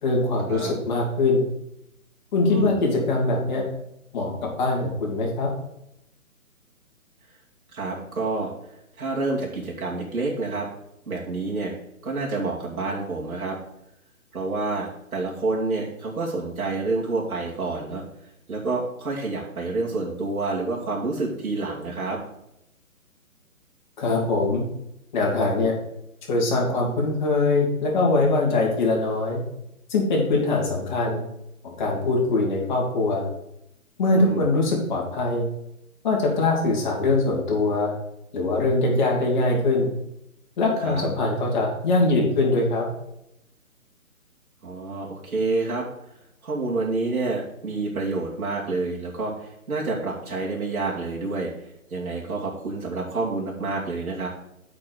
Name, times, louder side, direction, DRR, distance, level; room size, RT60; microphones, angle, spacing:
voice 1, 0.0-1.4 2.3-3.6 4.1-5.5 24.0-24.6 25.1-25.7 26.3-29.4 29.9-31.2 31.6-33.3 34.0-35.4 36.0-37.9 38.3-39.9 40.6-42.9, left 2 dB, 30° left, -2 dB, 2.5 m, -22 dB
voice 2, 7.7-8.5 9.0-10.7 11.1-11.7 12.0-13.6 14.3-18.0 18.5-22.2 34.1-34.5 40.8-41.1 44.6-45.8 46.4-51.5 51.9-54.3, right 3 dB, 80° right, -4 dB, 2.7 m, -28 dB
6.8 x 5.3 x 6.4 m, 0.81 s
hypercardioid pair, 160°, 43 cm